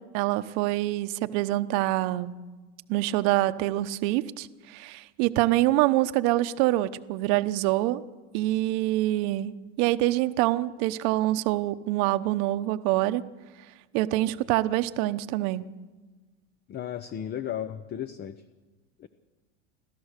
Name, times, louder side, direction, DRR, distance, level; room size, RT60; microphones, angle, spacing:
voice 1, 0.0-2.3 2.9-8.0 8.3-13.2 13.9-15.7, right 16 dB, 55° right, 13 dB, 1.1 m, -25 dB
voice 2, 16.7-18.4 19.0-19.1, left 10 dB, 25° left, 12 dB, 0.8 m, -34 dB
29.5 x 13.5 x 6.7 m, 1.3 s
supercardioid pair, 120°, 37 cm